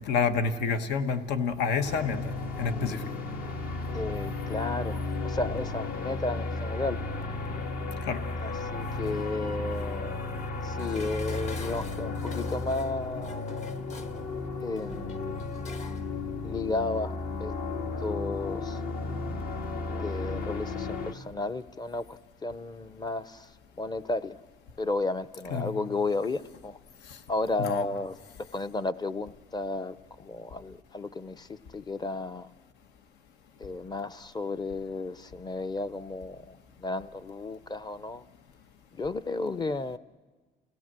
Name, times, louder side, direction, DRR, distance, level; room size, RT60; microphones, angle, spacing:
voice 1, 0.0-3.1 8.1-8.2 25.5-25.8 27.1-27.2 27.6-27.9, left 5 dB, 80° left, 8 dB, 1.3 m, -29 dB
sound 1, 1.8-21.1, left 3 dB, 60° left, 1.7 m, -34 dB
voice 2, 3.9-7.0 8.4-10.2 10.6-13.5 14.6-15.5 16.4-17.1 17.4-17.6 18.0-18.8 19.9-23.5 23.8-24.4 24.8-26.8 27.3-32.5 33.6-38.3 38.9-40.0, left 3 dB, 25° left, 15 dB, 0.7 m, -33 dB
Dishes pots and pans, 10.8-16.1 16.4-16.5, left 4 dB, 40° left, 1.4 m, -46 dB
29.5 x 17.0 x 7.6 m, 1.4 s
cardioid pair, 110°, 17 cm